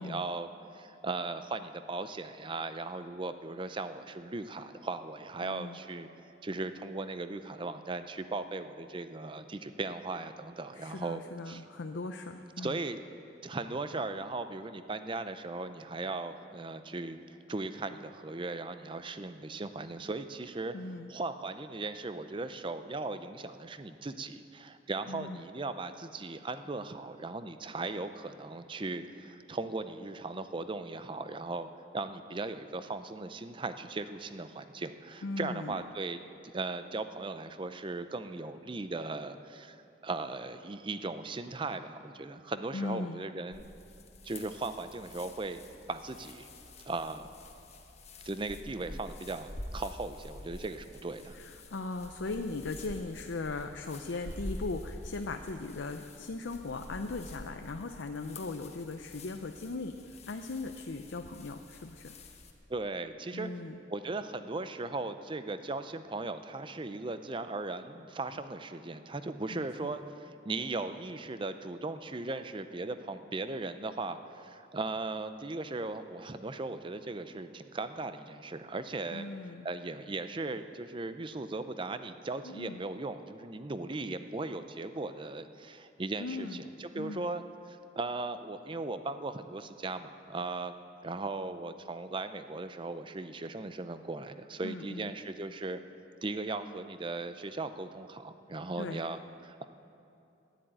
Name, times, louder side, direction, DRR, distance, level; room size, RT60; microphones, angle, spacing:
voice 1, 0.0-6.1 6.4-11.6 12.6-13.0 13.4-17.2 17.5-20.7 21.1-31.7 31.9-36.2 36.5-43.7 44.2-45.6 45.9-46.5 46.9-47.3 48.2-51.4 62.7-63.5 63.9-79.3 79.6-95.8 96.2-99.6, right 3 dB, 25° right, 10 dB, 0.5 m, -38 dB
voice 2, 5.4-5.8 10.8-12.8 20.7-21.1 25.1-25.4 35.2-35.8 42.7-43.2 51.4-62.1 63.3-63.8 69.5-69.9 79.1-79.7 82.4-82.8 86.2-86.6 86.9-87.3 94.6-95.1 98.8-99.0, left 3 dB, 80° left, 6 dB, 0.6 m, -39 dB
sound 1, 43.5-62.5, left 1 dB, 35° left, 1.1 m, -47 dB
12.5 x 10.5 x 8.9 m, 2.7 s
head